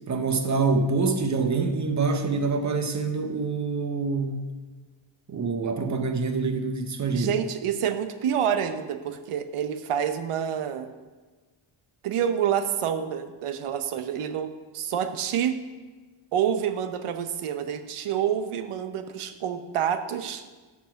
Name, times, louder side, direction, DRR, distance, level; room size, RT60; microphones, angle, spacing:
voice 1, 0.1-4.5 5.3-7.3, right 4 dB, 35° right, 7 dB, 0.8 m, -26 dB
voice 2, 7.1-10.9 12.0-14.5 14.7-15.6 16.3-20.5, right 9 dB, 85° right, 9 dB, 0.9 m, -28 dB
9.5 x 6.0 x 5.7 m, 1.3 s
wide cardioid pair, 175°, 50 cm